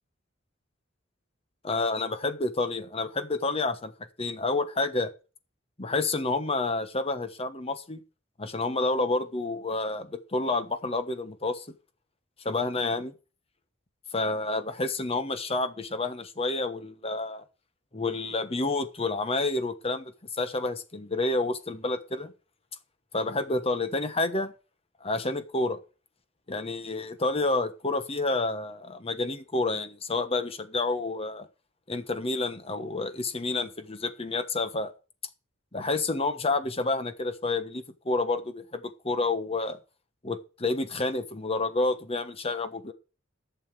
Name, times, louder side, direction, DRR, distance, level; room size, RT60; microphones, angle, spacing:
voice 1, 1.6-3.9 4.2-5.1 5.8-8.0 8.4-11.7 12.4-13.1 14.1-17.4 17.9-22.3 23.1-24.5 25.0-25.8 26.5-31.5 31.9-34.9 35.7-39.8 40.2-42.9, left 2 dB, 30° left, 1.2 m, -29 dB
11.0 x 7.0 x 6.1 m
head